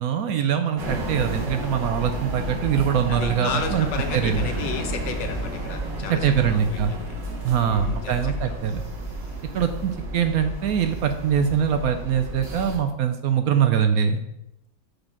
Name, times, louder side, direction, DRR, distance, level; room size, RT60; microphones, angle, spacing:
voice 1, 0.0-3.9 4.1-4.5 6.1-7.0 7.4-8.8 9.5-14.2, right 8 dB, 70° right, 8 dB, 0.9 m, -23 dB
sound 1, 0.8-12.8, right 1 dB, 90° right, 2.2 m, -31 dB
voice 2, 3.1-7.0 7.6-8.7, left 6 dB, 85° left, 6 dB, 1.6 m, -33 dB
6.4 x 4.1 x 6.0 m, 0.83 s
omnidirectional pair, 1.9 m